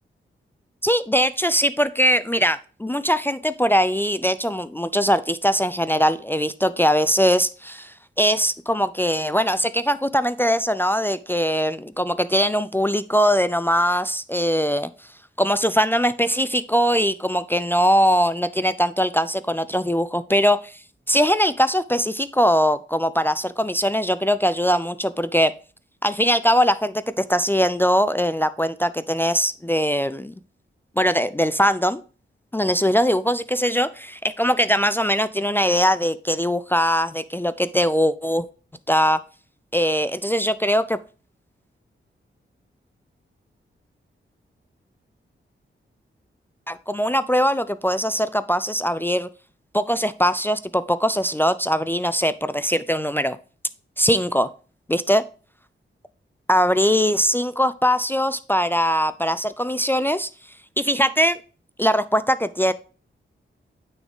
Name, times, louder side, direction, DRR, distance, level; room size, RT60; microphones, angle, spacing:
voice 1, 0.8-14.9 15.4-20.8 21.1-25.5 26.0-30.3 31.0-32.0 32.5-38.4 38.9-39.2 39.7-41.0 46.7-49.3 49.7-53.4 54.0-54.5 54.9-55.2 56.5-60.3 60.8-61.4 61.8-62.7, equal, 10° left, 14 dB, 0.3 m, -21 dB
9.0 x 3.9 x 3.6 m, 0.37 s
wide cardioid pair, 85°, 21 cm